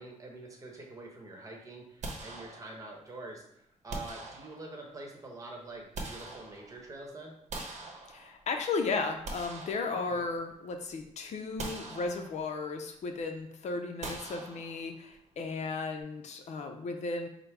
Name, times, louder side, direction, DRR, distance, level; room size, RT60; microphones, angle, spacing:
voice 1, 0.0-7.3 9.9-10.2, right 2 dB, 25° right, 0 dB, 0.9 m, -46 dB
sound 1, 2.0-3.1 3.9-4.9 5.6-6.9 7.5-8.6 9.0-10.5 10.9-11.0 11.6-12.6 14.0-15.1, right 2 dB, 60° right, 0.9 m, -43 dB
voice 2, 8.1-17.3, left 4 dB, 60° left, 5 dB, 0.5 m, -35 dB
4.9 x 2.0 x 4.5 m, 0.75 s
cardioid pair, 115°, 13 cm